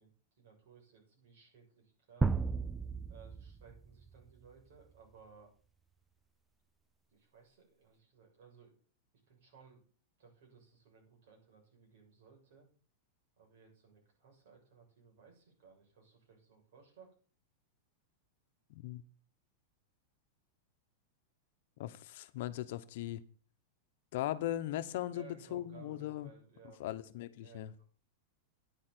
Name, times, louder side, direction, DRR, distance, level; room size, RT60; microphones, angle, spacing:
voice 1, 0.0-2.3 3.1-5.5 7.1-8.8 9.3-9.8 10.2-12.7 13.4-17.2 25.1-27.1 27.4-27.8, right 6 dB, 65° right, 0 dB, 6.9 m, -60 dB
sound 1, 2.2-4.2, right 4 dB, 10° right, 0.4 m, -34 dB
voice 2, 18.7-19.0 21.8-23.2 24.1-26.3 26.8-27.7, left 13 dB, 60° left, 11 dB, 0.9 m, -39 dB
9.8 x 6.6 x 7.8 m, 0.41 s
supercardioid pair, 155°, 0 cm